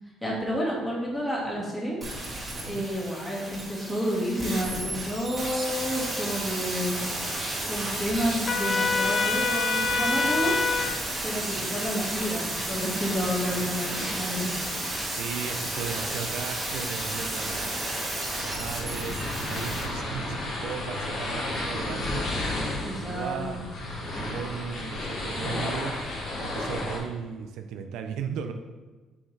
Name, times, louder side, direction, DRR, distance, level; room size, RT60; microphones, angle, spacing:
voice 1, 0.2-2.0 2.7-7.0 7.6-10.5 11.2-14.5 22.8-23.6, equal, 10° left, -5 dB, 1.9 m, -30 dB
sound 1, 2.0-19.8 20.1-20.2, right 1 dB, 25° right, 1.6 m, -32 dB
Trumpet, 8.5-11.0, left 4 dB, 35° left, 0.4 m, -26 dB
voice 2, 15.1-17.8 18.4-19.2 19.4-22.2 23.0-23.6 24.1-28.5, right 7 dB, 85° right, 6 dB, 0.5 m, -36 dB
sound 2, 18.7-27.0, left 1 dB, 60° left, 1.9 m, -32 dB
7.2 x 4.6 x 3.3 m, 1.3 s
cardioid pair, 140°, 0 cm